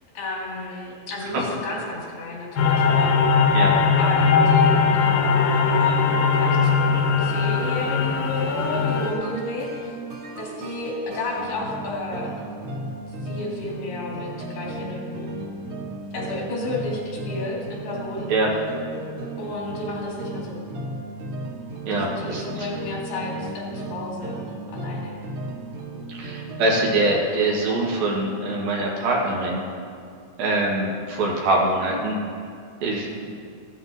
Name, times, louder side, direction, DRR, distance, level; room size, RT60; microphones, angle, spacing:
voice 1, 0.1-3.1 4.0-9.9 10.4-12.3 13.2-15.3 16.1-18.3 19.4-20.6 21.9-24.4 24.7-25.2, left 2 dB, 85° left, -4 dB, 4.4 m, -32 dB
sound 1, 2.6-9.1, left 5 dB, 70° left, 2.5 m, -19 dB
sound 2, 8.5-27.2, right 2 dB, 55° right, 1.6 m, -35 dB
voice 2, 21.9-22.4 26.1-29.6 30.4-32.2 32.8-33.4, right 2 dB, 75° right, -3 dB, 3.2 m, -23 dB
15.5 x 12.5 x 2.8 m, 2.3 s
omnidirectional pair, 4.4 m